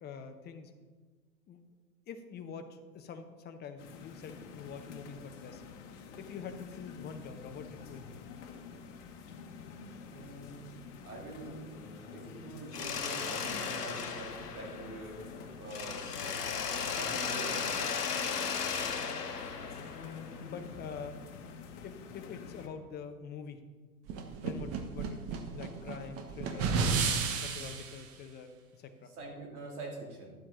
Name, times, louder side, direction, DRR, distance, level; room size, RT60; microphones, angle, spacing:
voice 1, 0.0-0.7 1.5-1.6 2.1-5.6 6.2-8.2 20.4-21.2 21.8-23.6 24.4-26.8 27.4-29.1, left 6 dB, 20° left, 7 dB, 0.9 m, -45 dB
sound 1, 3.8-22.7, left 5 dB, 50° left, 1.4 m, -48 dB
voice 2, 10.1-10.6 11.0-11.7 12.1-15.2 15.6-16.4 16.9-17.8 29.2-30.3, right 2 dB, 70° right, -1 dB, 3.1 m, -44 dB
Mechanisms, 12.7-15.3 15.7-20.5, left 6 dB, 75° left, 1.2 m, -36 dB
sound 2, 24.1-28.0, right 5 dB, 30° right, 1.1 m, -32 dB
12.0 x 7.5 x 3.9 m, 1.4 s
figure-of-eight pair, 100°, 46 cm